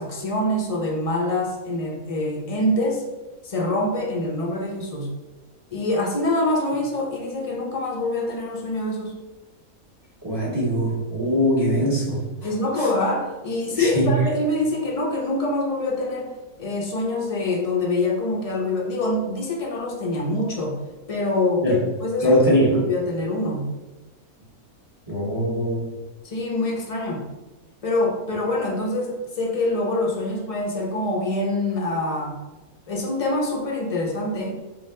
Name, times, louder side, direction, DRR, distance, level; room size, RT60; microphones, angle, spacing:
voice 1, 0.0-3.0 3.4-5.1 5.7-9.1 12.4-16.3 16.6-20.8 21.1-22.4 22.7-23.7 26.2-27.3 27.8-32.4 32.9-34.6, left 2 dB, 55° left, -1 dB, 0.3 m, -25 dB
voice 2, 10.2-12.2 12.8-12.9 13.8-14.2 21.6-21.7 22.2-22.8 25.1-25.9, equal, 20° right, -7 dB, 0.9 m, -21 dB
5.2 x 2.4 x 3.2 m, 1.1 s
omnidirectional pair, 1.6 m